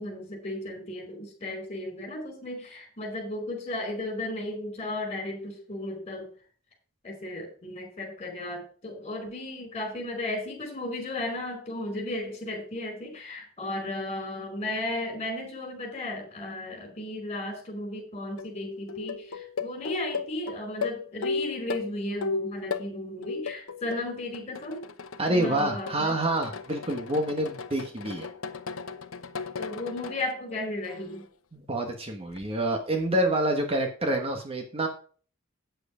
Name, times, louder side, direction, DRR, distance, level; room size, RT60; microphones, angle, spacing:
voice 1, 0.0-6.3 7.0-24.8 25.3-26.2 29.6-31.2, left 1 dB, 30° left, 3 dB, 4.6 m, -35 dB
sound 1, 18.3-18.5 18.9-22.9 23.2-24.0 24.3-30.3 30.8-31.2 32.3-32.4, left 4 dB, 80° left, 0.9 m, -35 dB
voice 2, 25.2-28.3 31.5-34.9, right 1 dB, 30° right, 3 dB, 1.2 m, -27 dB
9.1 x 7.8 x 5.0 m, 0.42 s
head